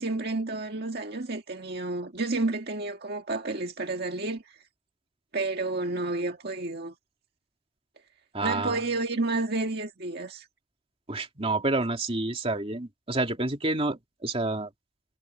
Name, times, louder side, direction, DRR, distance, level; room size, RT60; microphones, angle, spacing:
voice 1, 0.0-4.6 5.3-6.9 8.4-10.5, right 2 dB, 55° right, 1.8 m, -30 dB
voice 2, 8.3-8.8 11.1-14.7, right 2 dB, 30° right, 2.7 m, -29 dB
head